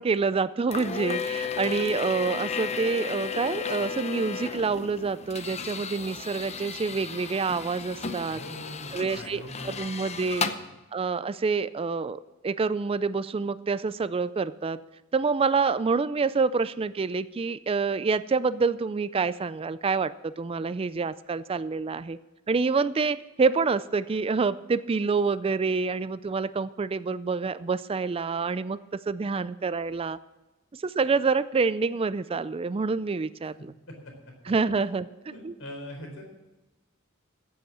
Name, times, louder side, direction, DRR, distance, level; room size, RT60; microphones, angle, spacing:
voice 1, 0.0-8.4 8.9-10.5 10.9-14.8 15.1-22.2 22.5-28.8 29.1-30.2 30.7-33.7 34.5-35.1 35.4-35.5, right 4 dB, 30° right, 15 dB, 0.4 m, -27 dB
sound 1, 0.7-10.6, left 6 dB, 30° left, 0.8 m, -34 dB
voice 2, 8.3-10.1 10.5-10.7 33.9-34.0 34.8-34.9 35.3-36.2, left 1 dB, 75° left, 2 dB, 4.4 m, -42 dB
15.5 x 7.9 x 7.4 m, 1.1 s
head